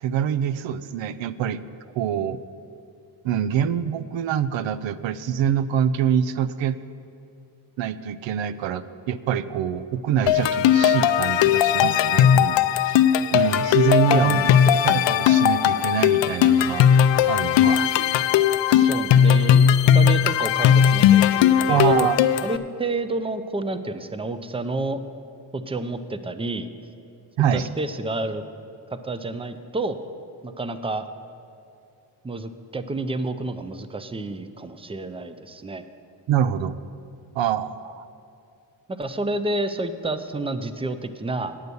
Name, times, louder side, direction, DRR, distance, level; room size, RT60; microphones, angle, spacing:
voice 1, 0.0-1.6 2.0-2.4 3.2-6.8 7.8-13.0 13.3-14.4 14.7-16.9 17.3-17.9 18.7-18.9 21.7-22.2 27.4-27.7 36.3-36.7 37.4-38.1, right 9 dB, 90° right, 14 dB, 0.5 m, -25 dB
sound 1, 10.3-22.6, left 9 dB, 75° left, 0.5 m, -18 dB
voice 2, 14.1-14.7 18.8-19.7 19.9-22.1 22.4-25.0 25.5-26.7 27.5-28.4 28.9-30.0 30.4-31.1 32.2-35.8 38.9-41.6, right 2 dB, 15° right, 11 dB, 0.4 m, -29 dB
9.3 x 8.1 x 6.8 m, 2.6 s
wide cardioid pair, 115°, 44 cm